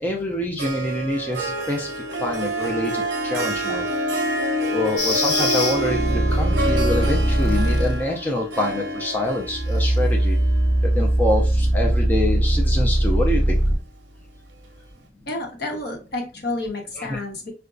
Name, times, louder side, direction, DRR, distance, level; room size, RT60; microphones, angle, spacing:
voice 1, 0.0-1.9 2.2-3.9 4.7-10.4 10.8-13.6 17.0-17.2, left 1 dB, 10° left, -1 dB, 0.4 m, -26 dB
Harp, 0.6-12.0, right 1 dB, 65° right, 0.8 m, -28 dB
sound 1, 5.0-8.0 9.5-13.8, right 1 dB, 85° left, 1.3 m, -20 dB
voice 2, 15.3-17.5, left 2 dB, 55° left, 2 dB, 1.0 m, -30 dB
4.7 x 2.2 x 2.5 m, 0.34 s
head